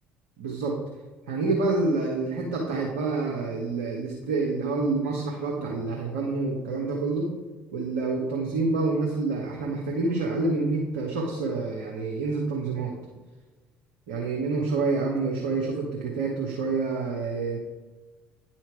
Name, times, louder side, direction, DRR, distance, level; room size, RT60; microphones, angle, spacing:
voice 1, 0.4-0.8 1.3-7.3 7.7-12.9 14.1-17.6, right 3 dB, 70° right, -1 dB, 1.1 m, -27 dB
9.3 x 4.5 x 4.6 m, 1.3 s
figure-of-eight pair, 55°, 6 cm